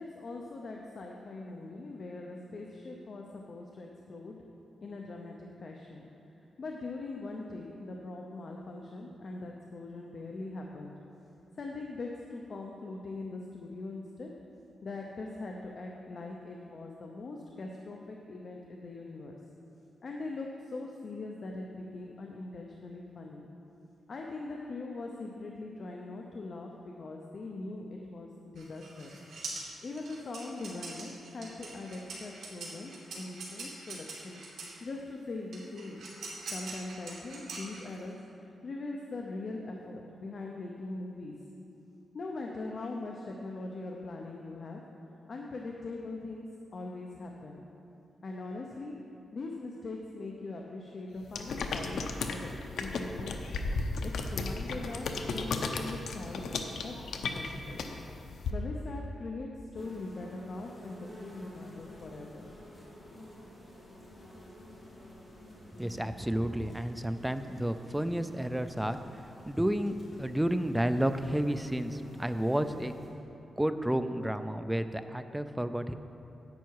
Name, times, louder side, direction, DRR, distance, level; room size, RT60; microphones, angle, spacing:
voice 1, 0.0-4.5 4.8-6.0 6.4-10.9 11.6-14.4 14.8-19.4 20.0-23.5 24.1-29.2 29.8-34.4 34.8-36.1 36.5-41.5 42.1-44.8 45.3-46.5 46.7-47.6 48.2-48.9 49.3-52.5 52.8-53.4 54.0-57.9 58.5-62.5, left 2 dB, 45° left, 0 dB, 0.7 m, -41 dB
sound 1, 28.6-34.8 35.5-38.1, right 3 dB, 70° right, 2.6 m, -43 dB
sound 2, 51.3-58.5, left 3 dB, 80° left, 0.7 m, -35 dB
sound 3, 59.7-73.1, left 1 dB, 20° left, 2.3 m, -51 dB
voice 2, 65.8-69.0 69.5-72.9 73.6-75.9, right 1 dB, 5° right, 10 dB, 0.4 m, -31 dB
10.5 x 8.1 x 4.7 m, 2.9 s
wide cardioid pair, 140°, 0 cm